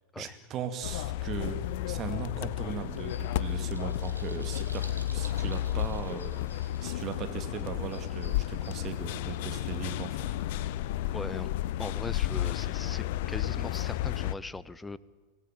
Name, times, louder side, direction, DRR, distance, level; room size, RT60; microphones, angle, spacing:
voice 1, 0.2-10.4, right 7 dB, 30° right, 7 dB, 2.2 m, -38 dB
sound 1, 0.8-14.3, left 13 dB, 50° left, 0.6 m, -32 dB
sound 2, 2.6-8.4, right 2 dB, 85° right, 2.1 m, -51 dB
sound 3, 3.0-9.5, left 5 dB, 65° left, 3.0 m, -58 dB
voice 2, 11.1-11.5 11.8-15.0, left 2 dB, 10° left, 19 dB, 0.7 m, -40 dB
25.0 x 16.5 x 8.9 m, 1.4 s
figure-of-eight pair, 90°, 0 cm